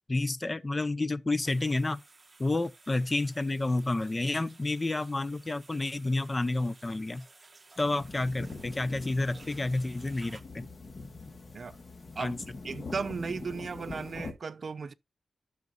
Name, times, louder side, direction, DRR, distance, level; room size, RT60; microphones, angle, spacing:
voice 1, 0.1-2.0 2.4-7.2 7.8-10.6 12.2-12.4, left 2 dB, 25° left, 0.6 m, -30 dB
sound 1, 1.4-10.4, right 3 dB, 30° right, 1.2 m, -56 dB
sound 2, 7.8-14.3, left 3 dB, 40° left, 1.7 m, -43 dB
voice 2, 12.6-14.9, right 5 dB, 55° right, 0.6 m, -36 dB
12.0 x 6.5 x 2.6 m
wide cardioid pair, 140°, 0 cm